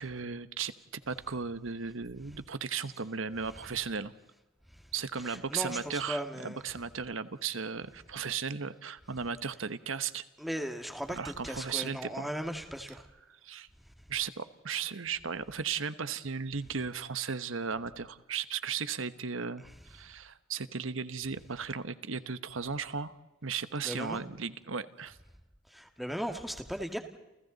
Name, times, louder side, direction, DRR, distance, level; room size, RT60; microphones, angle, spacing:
voice 1, 0.0-4.1 4.9-10.2 11.1-12.3 13.3-13.7 14.1-23.1 23.4-25.2, right 6 dB, 90° right, 12 dB, 1.1 m, -36 dB
voice 2, 5.3-6.6 10.4-13.0 23.8-24.2 25.7-27.0, equal, ahead, 5 dB, 2.1 m, -37 dB
29.5 x 29.5 x 4.1 m, 1.0 s
head